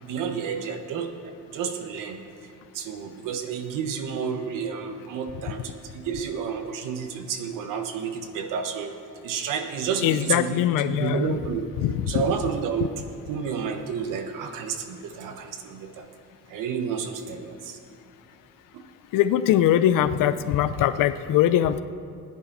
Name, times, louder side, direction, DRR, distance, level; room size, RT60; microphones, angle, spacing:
voice 1, 0.0-1.1 1.5-11.7 12.1-16.1 16.5-17.8 18.7-18.8, right 7 dB, 85° right, 6 dB, 1.3 m, -31 dB
voice 2, 10.0-11.4 11.8-11.9 19.1-21.8, left 11 dB, 90° left, 13 dB, 0.6 m, -21 dB
19.5 x 9.9 x 4.1 m, 2.5 s
cardioid pair, 175°, 31 cm